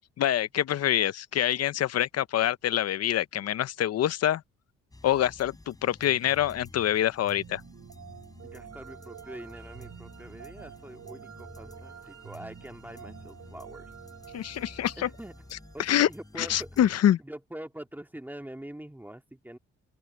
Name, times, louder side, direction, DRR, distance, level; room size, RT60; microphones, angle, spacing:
voice 1, 0.2-4.4 5.0-7.6 14.3-15.1 15.8-16.1 16.4-17.2, left 11 dB, 55° left, 0.7 m, -25 dB
sound 1, 4.9-16.9, left 2 dB, 10° left, 4.4 m, -51 dB
sound 2, 7.2-16.4, right 9 dB, 60° right, 4.7 m, -48 dB
voice 2, 8.4-13.9 15.0-15.3 15.7-16.9 17.2-19.6, right 1 dB, 5° right, 2.1 m, -44 dB
open air
cardioid pair, 90°, 30 cm